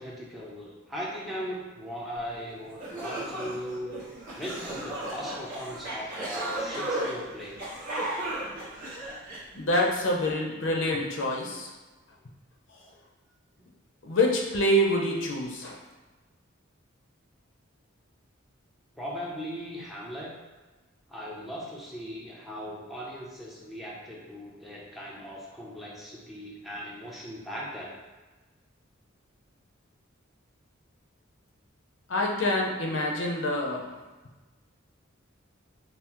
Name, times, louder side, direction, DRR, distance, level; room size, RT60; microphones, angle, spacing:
voice 1, 0.0-3.9 4.4-7.7 13.6-13.7 19.0-20.3 21.1-27.9, equal, ahead, -5 dB, 0.6 m, -38 dB
sound 1, 2.4-2.5 2.8-9.9, right 1 dB, 45° right, 1.3 m, -35 dB
voice 2, 9.6-11.7 14.0-15.8 32.1-33.9, left 1 dB, 65° left, 0 dB, 0.6 m, -26 dB
5.4 x 2.0 x 2.9 m, 1.2 s
head